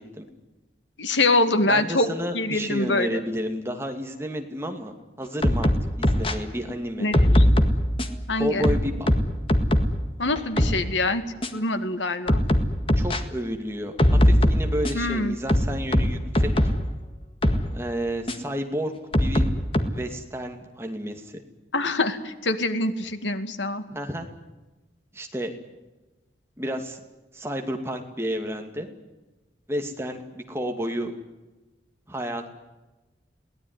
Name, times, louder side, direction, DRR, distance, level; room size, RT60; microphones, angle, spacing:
voice 1, 1.0-2.1 2.3-3.2 7.0-7.5 8.3-8.8 10.2-11.2 11.5-12.4 14.9-15.4 21.7-23.8, left 2 dB, 85° left, 9 dB, 2.2 m, -24 dB
voice 2, 1.6-7.1 8.4-9.1 13.0-14.0 14.2-16.5 17.7-18.9 19.2-19.5 19.9-21.4 23.9-24.3 25.1-25.5 26.6-27.0 27.3-28.9 29.7-31.1 32.1-32.5, equal, 15° right, 4 dB, 2.5 m, -31 dB
sound 1, 5.4-6.3 7.1-8.2 8.6-10.0 10.4-10.8 11.4-11.5 12.3-13.2 14.0-15.1 15.5-16.8 17.4-17.6 18.3-18.4 19.1-19.8, equal, 30° left, 1.9 m, -20 dB
22.5 x 18.0 x 9.7 m, 1.1 s
head